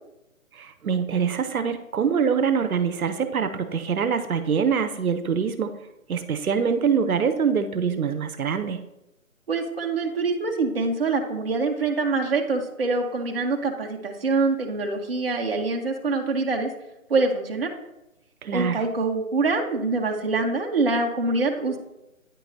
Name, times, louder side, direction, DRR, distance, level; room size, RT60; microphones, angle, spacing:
voice 1, 0.5-5.7 6.1-8.8 18.4-18.8, right 6 dB, 90° right, 10 dB, 0.7 m, -24 dB
voice 2, 9.5-16.7 17.1-17.7 18.5-21.8, right 3 dB, 45° right, 2 dB, 0.7 m, -25 dB
9.1 x 4.7 x 2.6 m, 0.91 s
hypercardioid pair, 170°, 42 cm